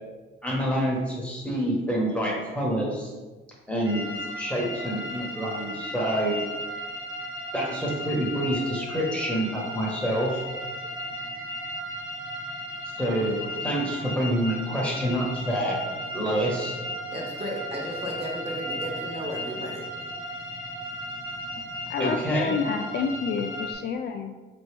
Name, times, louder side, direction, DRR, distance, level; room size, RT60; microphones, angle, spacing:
voice 1, 0.4-3.1 3.7-4.0 4.4-6.4 7.5-10.4 13.0-15.8 16.1-16.8 22.0-22.6, right 1 dB, 5° left, -4 dB, 1.3 m, -27 dB
sound 1, 3.8-23.7, equal, 80° right, 0.8 m, -35 dB
voice 2, 17.1-19.9, equal, 30° right, -2 dB, 1.2 m, -34 dB
voice 3, 21.9-24.3, left 6 dB, 55° left, 5 dB, 0.4 m, -29 dB
4.3 x 3.1 x 3.4 m, 1.3 s
cardioid pair, 90°, 20 cm